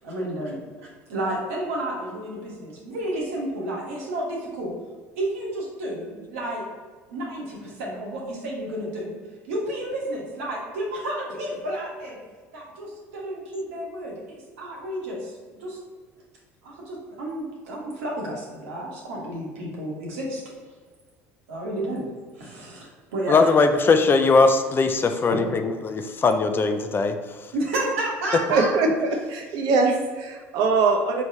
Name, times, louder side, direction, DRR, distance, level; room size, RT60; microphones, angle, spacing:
voice 1, 0.0-4.7 5.1-6.6 7.1-9.2 9.5-12.2 12.5-15.8 16.6-20.4 21.5-22.1 22.3-23.6 25.3-25.4 27.5-28.7, right 1 dB, 85° right, -3 dB, 1.2 m, -31 dB
voice 2, 23.3-27.2, left 4 dB, 30° left, 7 dB, 0.4 m, -20 dB
voice 3, 28.5-31.2, right 3 dB, 65° right, 3 dB, 0.7 m, -22 dB
4.5 x 3.2 x 2.8 m, 1.5 s
hypercardioid pair, 75°, 7 cm